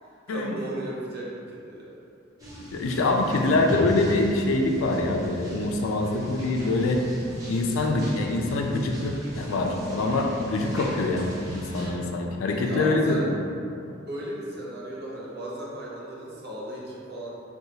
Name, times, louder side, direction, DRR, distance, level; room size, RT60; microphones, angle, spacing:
voice 1, 0.0-2.0 3.3-3.5 7.3-7.5 12.5-13.3 14.1-17.3, right 1 dB, 55° right, -5 dB, 0.7 m, -36 dB
sound 1, 2.4-11.9, equal, 20° right, 0.7 m, -37 dB
voice 2, 2.7-7.0 7.5-13.4, left 2 dB, 85° left, 2 dB, 0.4 m, -25 dB
2.8 x 2.3 x 3.8 m, 2.5 s
head